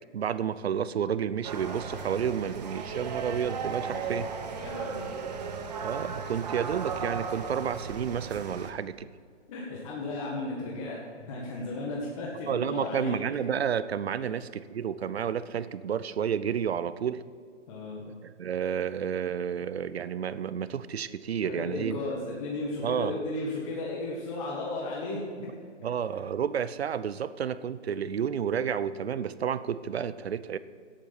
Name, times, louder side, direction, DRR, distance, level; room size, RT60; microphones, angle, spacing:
voice 1, 0.1-4.3 5.8-9.1 12.5-17.2 18.2-22.0 22.8-23.2 25.8-30.6, right 8 dB, 60° right, 15 dB, 0.6 m, -31 dB
sound 1, 1.4-8.7, right 5 dB, 35° right, 1.1 m, -36 dB
voice 2, 4.6-5.2 9.5-13.2 14.2-14.3 17.7-18.1 21.4-25.2 25.8-25.9, left 2 dB, 25° left, -4 dB, 1.8 m, -35 dB
13.5 x 10.0 x 4.3 m, 2.2 s
hypercardioid pair, 155°, 37 cm